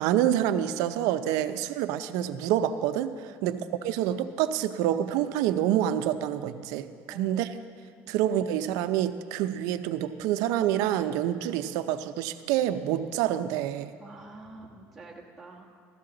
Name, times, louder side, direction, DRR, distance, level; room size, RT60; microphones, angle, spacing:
voice 1, 0.0-6.9 7.1-7.5 8.1-14.0, right 11 dB, 75° right, 11 dB, 0.5 m, -27 dB
voice 2, 7.1-7.5 8.0-8.2 14.0-15.7, right 2 dB, ahead, -6 dB, 1.2 m, -48 dB
14.5 x 13.0 x 3.9 m, 2.1 s
cardioid pair, 155°, 6 cm